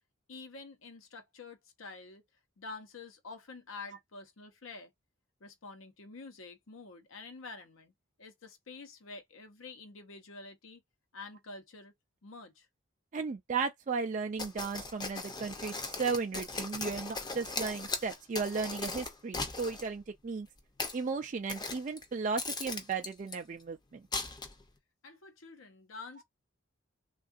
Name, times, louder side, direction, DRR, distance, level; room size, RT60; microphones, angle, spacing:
voice 1, 0.3-2.2 2.6-4.9 5.4-7.9 8.2-10.8 11.1-11.9 12.2-12.7 25.0-26.2, left 3 dB, 85° left, 0.8 m, -48 dB
voice 2, 13.1-20.5 20.9-24.0, right 4 dB, 40° right, 0.4 m, -35 dB
sound 1, 14.4-19.9 20.6-21.0 21.5-22.0 22.4-23.4 24.1-24.7, left 3 dB, 20° left, 0.6 m, -38 dB
3.6 x 2.4 x 2.5 m
head